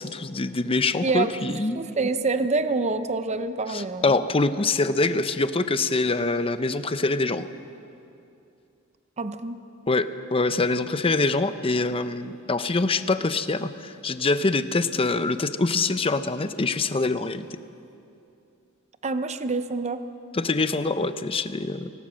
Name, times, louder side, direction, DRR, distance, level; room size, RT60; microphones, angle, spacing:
voice 1, 0.0-1.8 3.7-7.5 9.9-17.4 20.3-21.9, left 3 dB, 25° left, 11 dB, 0.7 m, -24 dB
voice 2, 1.0-4.2 9.2-9.6 19.0-20.0, right 3 dB, 35° right, 10 dB, 0.7 m, -27 dB
24.0 x 18.0 x 6.3 m, 2.7 s
head